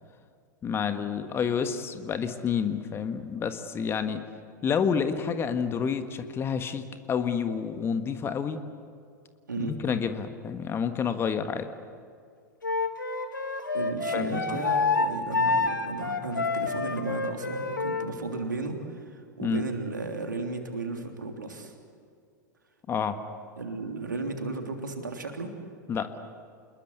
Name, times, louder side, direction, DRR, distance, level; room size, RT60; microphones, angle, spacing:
voice 1, 0.6-4.2 4.6-8.6 9.6-11.7 14.1-14.6 19.4-19.6 22.9-23.2 25.9-26.1, left 6 dB, 25° left, 9 dB, 1.6 m, -29 dB
Wind instrument woodwind instrument, 12.6-18.1, left 3 dB, 80° left, 2.0 m, -28 dB
voice 2, 13.7-21.7 23.6-25.5, right 3 dB, 80° right, 4 dB, 3.2 m, -34 dB
28.0 x 21.0 x 8.2 m, 2.3 s
figure-of-eight pair, 95°, 10 cm